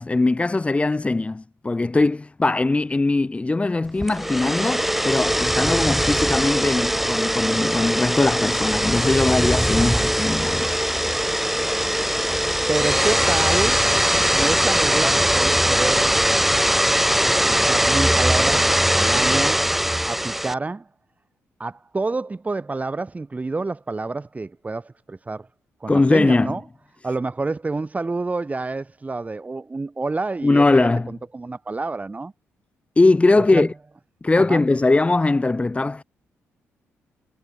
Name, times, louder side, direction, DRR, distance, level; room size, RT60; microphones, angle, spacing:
voice 1, 0.0-10.7 25.9-26.5 30.4-31.1 32.9-33.7 34.2-36.0, left 3 dB, 25° left, 1.6 m, -20 dB
sound 1, 4.0-20.5, equal, 5° right, 4.6 m, -20 dB
voice 2, 9.8-10.1 12.7-13.8 14.3-16.1 17.3-19.6 20.1-20.9 21.6-25.5 25.8-26.6 27.0-32.3 33.5-33.7 34.3-34.6, right 3 dB, 25° right, 4.3 m, -28 dB
supercardioid pair, 65°, 5 cm